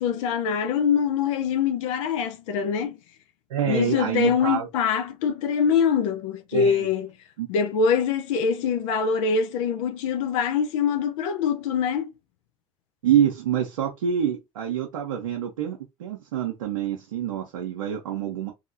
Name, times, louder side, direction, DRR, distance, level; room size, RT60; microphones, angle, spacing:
voice 1, 0.0-3.0 3.7-7.1 7.5-12.1, left 6 dB, 80° left, 0.5 m, -24 dB
voice 2, 3.5-4.7 6.5-6.9 7.4-7.5 13.0-18.5, right 9 dB, 90° right, 0.6 m, -26 dB
2.7 x 2.7 x 2.6 m
hypercardioid pair, 60°, 16 cm